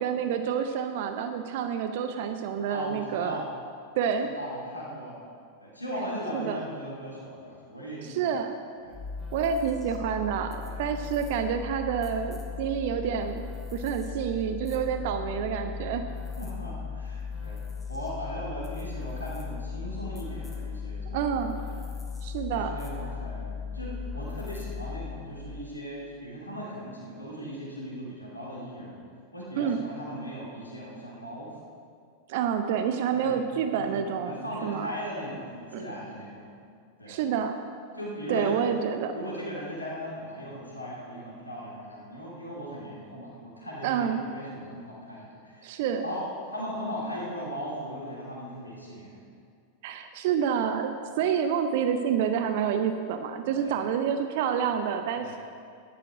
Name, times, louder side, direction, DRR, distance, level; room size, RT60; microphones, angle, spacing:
voice 1, 0.0-3.4 4.0-4.3 6.3-6.6 8.0-8.6 9.3-13.4 13.7-16.0 21.1-21.6 22.2-22.7 29.6-29.8 32.3-34.9 35.7-35.8 37.1-37.6 38.3-39.1 43.8-44.2 45.6-46.0 49.8-55.4, right 7 dB, 50° right, 7 dB, 0.7 m, -28 dB
voice 2, 2.7-3.4 4.2-5.2 5.6-8.3 8.8-9.0 10.6-10.8 16.4-17.6 17.9-21.8 22.5-29.0 29.3-31.5 33.1-33.4 33.7-33.9 34.2-36.5 37.0-37.2 37.9-38.6 39.1-49.2 53.5-53.8 55.2-55.3, equal, 80° left, -5 dB, 2.8 m, -38 dB
sound 1, 8.9-25.5, left 6 dB, 15° left, 2.2 m, -37 dB
14.0 x 11.0 x 5.0 m, 2.2 s
figure-of-eight pair, 90°, 0 cm